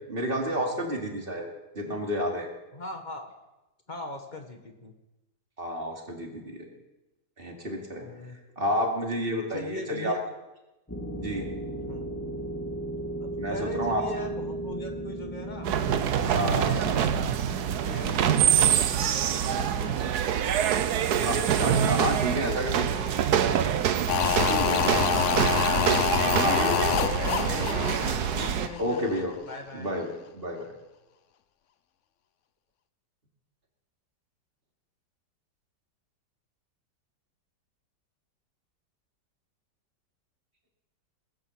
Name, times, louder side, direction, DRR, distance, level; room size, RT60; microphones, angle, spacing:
voice 1, 0.0-1.5 1.7-2.5 5.6-6.7 7.4-8.1 8.6-10.2 11.2-11.5 13.4-14.0 16.3-16.8 21.2-23.0 24.5-25.2 26.4-27.0 27.8-28.0 28.8-29.3 29.7-30.7, equal, 30° right, 0 dB, 2.9 m, -30 dB
voice 2, 2.7-3.3 3.9-4.9 8.0-8.4 9.5-10.2 11.9-12.1 13.2-15.7 16.2-17.2 17.8-20.2 21.9-22.1 22.9-23.5 24.4-25.7 27.3-29.0 29.5-29.9, left 1 dB, 25° left, 5 dB, 1.7 m, -40 dB
sound 1, 10.9-20.4, right 1 dB, 10° left, 2.1 m, -37 dB
sound 2, 15.6-28.7, right 9 dB, 70° right, 1.3 m, -25 dB
sound 3, 24.1-29.2 29.5-29.6, left 9 dB, 60° left, 0.9 m, -27 dB
20.0 x 9.8 x 7.4 m, 1.0 s
omnidirectional pair, 1.9 m